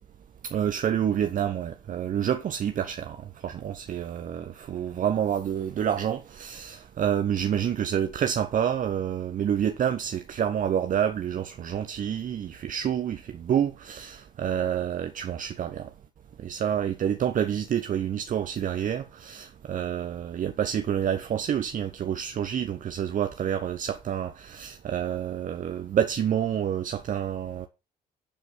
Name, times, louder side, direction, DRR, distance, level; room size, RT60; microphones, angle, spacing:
voice 1, 0.5-3.2 3.4-15.9 16.4-27.7, right 9 dB, 40° right, 0.8 m, -28 dB
11.5 x 5.4 x 5.8 m
figure-of-eight pair, 45°, 20 cm